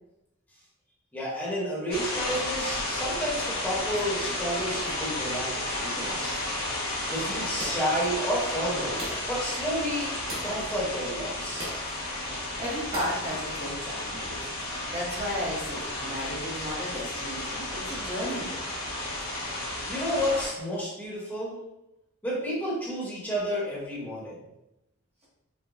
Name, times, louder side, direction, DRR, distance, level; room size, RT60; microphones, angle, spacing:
voice 1, 1.1-6.4 7.1-10.2 10.4-11.7 19.9-21.6 22.2-24.3, equal, 10° left, -7 dB, 1.1 m, -31 dB
sound 1, 1.9-20.5, left 1 dB, 90° left, 1.3 m, -33 dB
sound 2, 7.6-8.0 9.0-9.3 10.3-10.6 11.6-11.9 12.9-13.3, right 1 dB, 80° right, 1.1 m, -37 dB
voice 2, 12.6-14.5 14.9-18.6, equal, 30° right, -7 dB, 0.9 m, -34 dB
4.8 x 2.2 x 2.5 m, 0.89 s
head